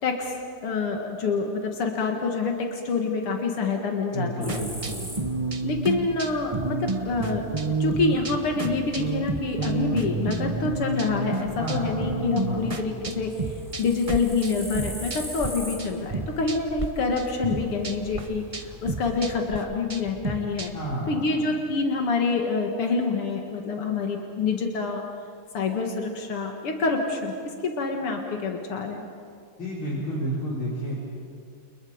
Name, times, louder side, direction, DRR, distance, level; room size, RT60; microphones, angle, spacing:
voice 1, 0.0-4.6 5.6-20.7 21.1-25.0 25.5-27.3 27.6-29.0, left 4 dB, 85° left, 2 dB, 2.7 m, -27 dB
voice 2, 4.1-5.1 11.6-12.8 20.7-21.4 29.6-31.0, right 1 dB, 65° left, -7 dB, 5.5 m, -31 dB
sound 1, 4.4-19.5, equal, ahead, 3.7 m, -43 dB
sound 2, 4.5-15.5 15.8-16.9 17.2-20.9, right 3 dB, 30° right, 0.6 m, -30 dB
30.0 x 29.5 x 5.1 m, 2.2 s
omnidirectional pair, 2.4 m